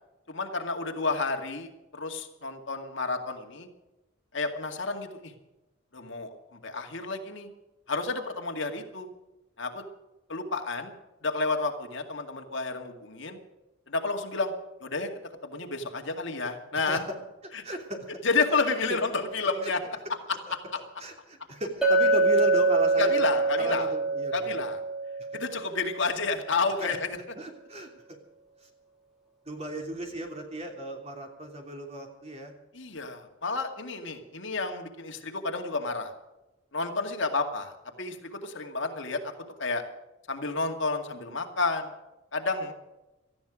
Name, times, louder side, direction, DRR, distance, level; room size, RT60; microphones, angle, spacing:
voice 1, 0.3-3.7 4.3-5.3 5.9-6.3 6.6-7.5 7.9-9.1 9.6-9.8 10.3-10.9 11.2-13.4 13.9-14.5 14.8-15.1 15.4-17.0 17.5-17.6 18.2-19.8 20.5-20.6 23.0-23.9 24.3-24.8 25.3-27.2 32.7-36.1 36.7-37.7 38.0-39.3 39.6-39.8 40.3-41.9 42.3-42.7, left 3 dB, 65° left, 4 dB, 2.2 m, -30 dB
voice 2, 17.6-18.0 18.5-18.6 18.9-19.0 19.6-19.7 21.0-24.5 26.8-27.0 27.3-27.9 28.6-28.7 29.4-32.5, right 1 dB, 30° right, 2 dB, 3.1 m, -36 dB
Chink clink, 21.8-26.0, right 3 dB, 5° right, 2.7 m, -25 dB
18.0 x 14.0 x 5.1 m, 1.0 s
head